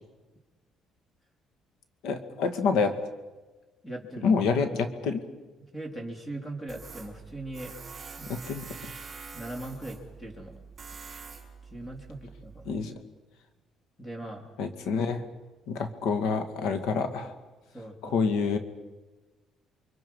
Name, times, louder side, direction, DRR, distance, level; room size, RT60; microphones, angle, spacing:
voice 1, 2.0-3.0 4.2-5.2 8.3-8.9 12.6-12.9 14.6-15.2 15.7-17.3 18.0-18.6, left 5 dB, 80° left, 7 dB, 2.2 m, -27 dB
voice 2, 3.8-4.3 5.7-7.7 8.2-8.3 9.3-10.6 11.7-12.8 14.0-14.5 17.7-18.2, right 1 dB, 10° left, 2 dB, 3.5 m, -40 dB
Tools, 6.7-12.8, right 5 dB, 30° right, 5.0 m, -45 dB
29.5 x 23.5 x 5.5 m, 1.2 s
cardioid pair, 130°, 0 cm